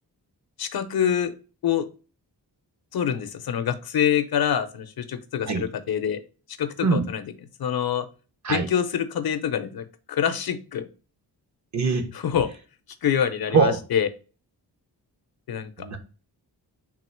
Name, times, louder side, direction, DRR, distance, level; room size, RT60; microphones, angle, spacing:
voice 1, 0.6-1.3 1.6-1.9 2.9-6.2 6.6-7.2 7.6-8.1 8.5-10.9 12.1-12.5 13.0-14.1 15.5-15.9, left 8 dB, 60° left, 11 dB, 0.6 m, -25 dB
voice 2, 11.7-12.1 13.5-13.8 15.8-16.0, right 5 dB, 45° right, 6 dB, 0.8 m, -22 dB
3.8 x 2.4 x 4.3 m, 0.34 s
wide cardioid pair, 105°, 41 cm